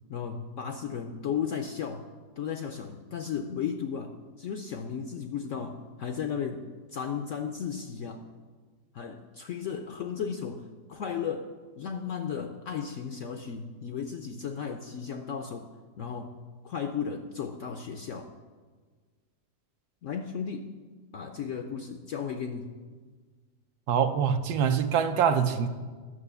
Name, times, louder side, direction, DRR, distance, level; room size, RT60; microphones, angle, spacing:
voice 1, 0.1-2.1 2.4-8.2 8.9-15.7 16.0-16.4 16.6-18.3 20.0-20.7 21.1-22.7, left 7 dB, 70° left, 6 dB, 0.7 m, -35 dB
voice 2, 23.9-25.7, right 7 dB, 70° right, 9 dB, 1.1 m, -24 dB
11.0 x 6.1 x 6.8 m, 1.4 s
omnidirectional pair, 1.8 m